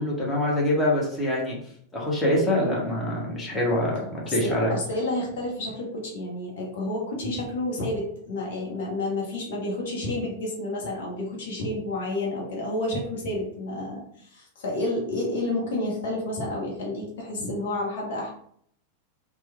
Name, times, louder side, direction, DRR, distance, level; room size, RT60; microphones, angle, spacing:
voice 1, 0.0-1.6 1.9-4.7, left 1 dB, 15° left, -4 dB, 1.1 m, -25 dB
voice 2, 4.2-18.3, left 1 dB, 55° left, -2 dB, 0.9 m, -30 dB
3.1 x 2.3 x 3.3 m, 0.64 s
figure-of-eight pair, 90°, 0 cm